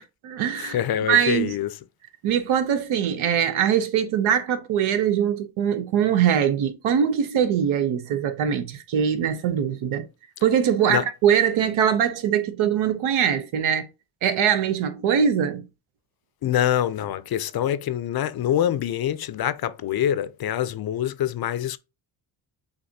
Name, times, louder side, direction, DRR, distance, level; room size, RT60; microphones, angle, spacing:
voice 1, 0.0-0.8 1.1-1.5 2.2-10.1 10.4-13.9 14.2-15.6, right 8 dB, 80° right, 0.8 m, -22 dB
voice 2, 0.5-1.8 10.9-11.1 16.4-21.8, left 10 dB, 50° left, 0.5 m, -25 dB
6.6 x 2.6 x 2.7 m
cardioid pair, 65°, 47 cm